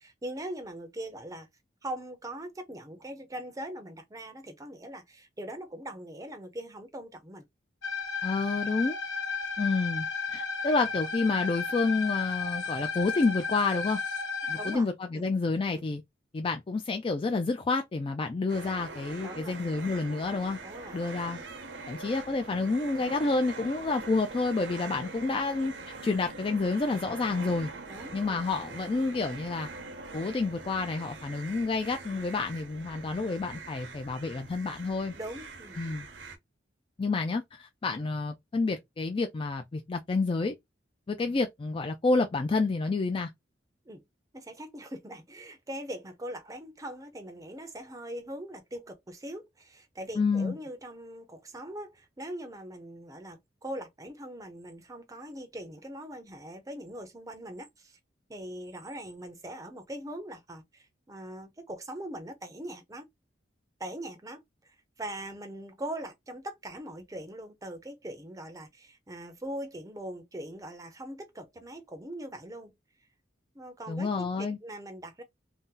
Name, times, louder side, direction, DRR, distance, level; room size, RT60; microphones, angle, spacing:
voice 1, 0.0-1.5 1.8-7.5 14.6-14.9 15.1-15.3 15.7-15.9 19.2-19.6 20.6-21.0 27.9-28.4 35.1-35.8 43.9-44.0 44.3-58.0 58.3-63.1 63.8-72.7 73.5-75.2, right 1 dB, 20° right, 0.6 m, -41 dB
sound 1, 7.8-14.8, left 5 dB, 85° left, 1.0 m, -33 dB
voice 2, 8.2-9.0 9.6-14.0 14.5-16.0 16.3-20.6 20.9-21.4 21.9-25.7 26.0-27.7 28.1-29.7 30.1-35.1 35.8-36.1 37.0-40.5 41.1-43.3 50.2-50.5 73.9-74.6, left 3 dB, 30° left, 0.3 m, -29 dB
sound 2, 18.5-36.4, right 3 dB, 70° right, 0.8 m, -43 dB
2.7 x 2.0 x 3.6 m
head